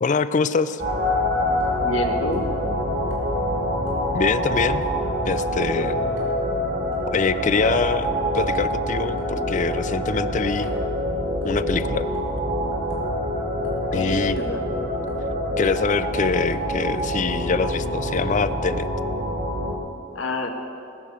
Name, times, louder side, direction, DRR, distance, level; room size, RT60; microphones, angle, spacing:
voice 1, 0.0-0.8 4.1-4.8 5.2-6.0 7.1-8.1 8.3-10.7 11.4-12.1 13.9-14.4 15.6-18.9, left 4 dB, 40° left, 14 dB, 0.4 m, -24 dB
sound 1, 0.8-19.8, equal, 50° right, 2.0 m, -25 dB
sound 2, 0.9-1.1 1.6-2.0 2.3-2.5 3.1-3.3 3.9-4.1 4.6-4.8 5.4-5.6 6.2-6.3 6.9-7.1 7.7-7.8 8.4-8.6 9.2-9.4 9.9-10.8 11.4-11.6 12.1-12.5 12.9-13.1 13.6-13.8 14.3-14.5 15.1-15.5 15.8-16.0 16.5-16.7 17.1-17.4 17.9-18.1 18.6-18.8, right 1 dB, 90° right, 3.3 m, -45 dB
voice 2, 1.8-2.4 5.7-6.2 13.9-14.6 20.1-20.5, left 2 dB, 80° left, 4 dB, 1.4 m, -29 dB
20.0 x 6.7 x 7.0 m, 2.6 s
head